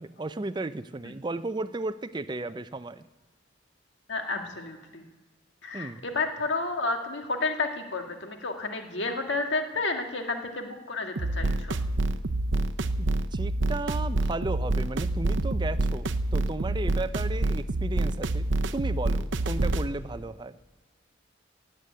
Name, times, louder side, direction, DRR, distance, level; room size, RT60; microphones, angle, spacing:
voice 1, 0.0-3.1 5.7-6.0 13.0-18.5 18.7-20.6, right 2 dB, 25° right, 14 dB, 0.4 m, -34 dB
voice 2, 4.1-5.0 5.6-11.8, left 3 dB, 65° left, 4 dB, 1.8 m, -31 dB
sound 1, 11.2-19.9, right 2 dB, 70° right, 0.7 m, -27 dB
17.0 x 9.1 x 8.3 m, 1.3 s
head